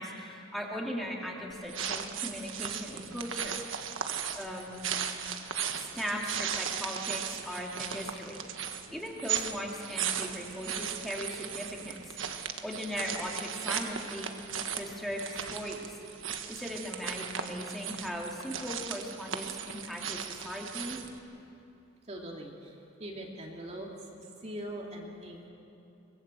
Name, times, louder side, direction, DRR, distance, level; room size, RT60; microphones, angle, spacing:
voice 1, 0.0-3.6 4.0-4.1 4.3-4.9 5.8-14.3 14.8-16.0 16.5-21.0, equal, ahead, -2 dB, 2.7 m, -38 dB
sound 1, 1.5-21.2, right 8 dB, 80° right, 1.4 m, -37 dB
voice 2, 22.1-23.9 24.2-25.5, right 1 dB, 35° right, -1 dB, 2.5 m, -42 dB
24.0 x 22.0 x 7.8 m, 2.7 s
head